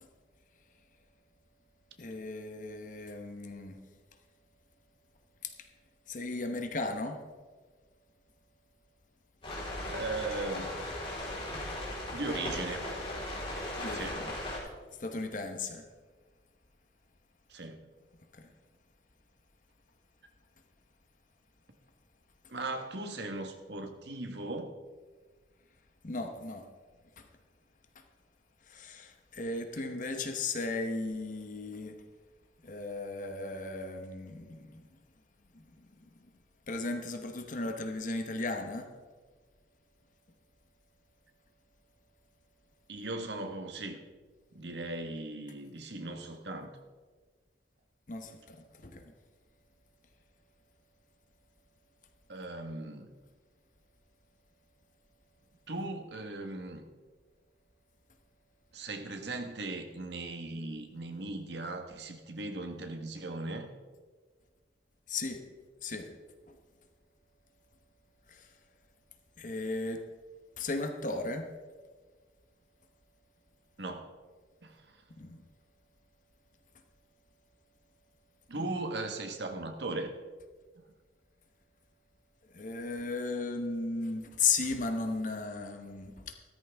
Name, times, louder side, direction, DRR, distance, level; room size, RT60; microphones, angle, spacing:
voice 1, 2.0-3.8 5.4-5.5 6.1-7.2 13.8-14.4 15.0-15.8 18.3-18.5 26.0-26.7 27.2-27.3 27.9-28.0 28.6-32.0 32.6-34.8 35.5-36.3 36.7-38.9 48.1-49.1 65.1-65.4 65.8-66.1 66.5-66.6 68.3-68.5 69.4-70.0 70.6-71.5 75.1-75.4 82.5-86.3, left 3 dB, 45° left, 6 dB, 1.0 m, -36 dB
sound 1, 9.4-14.6, left 1 dB, 30° left, 4.0 m, -37 dB
voice 2, 9.9-10.7 12.1-12.9 13.5-14.2 17.5-17.9 22.5-24.7 42.9-44.0 44.5-46.7 52.3-53.1 55.7-56.8 58.7-63.7 73.8-74.1 74.6-75.0 78.5-80.1, right 2 dB, 70° right, 5 dB, 1.4 m, -38 dB
14.5 x 13.0 x 3.6 m, 1.4 s
head